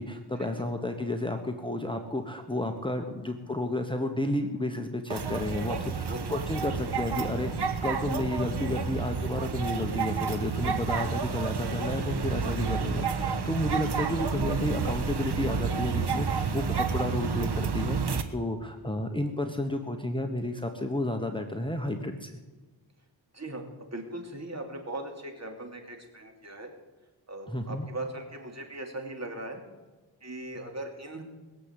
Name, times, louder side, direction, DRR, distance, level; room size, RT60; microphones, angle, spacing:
voice 1, 0.0-22.4 27.5-27.9, left 1 dB, 10° left, 4 dB, 1.2 m, -31 dB
sound 1, 5.1-18.2, right 6 dB, 55° right, 1.4 m, -30 dB
voice 2, 5.7-6.2 23.3-26.7 27.3-29.6 30.2-31.2, right 1 dB, 35° right, 3 dB, 3.1 m, -39 dB
21.0 x 7.6 x 8.3 m, 1.2 s
cardioid pair, 85°, 47 cm